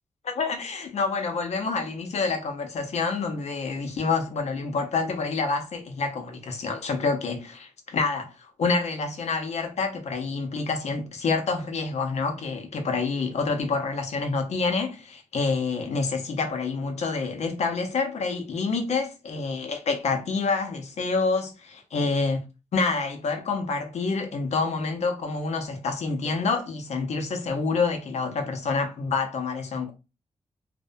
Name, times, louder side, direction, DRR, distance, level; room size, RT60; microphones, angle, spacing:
voice 1, 0.2-22.4 22.7-29.9, left 4 dB, 75° left, 0.6 m, -27 dB
2.6 x 2.1 x 2.5 m
cardioid pair, 85°, 12 cm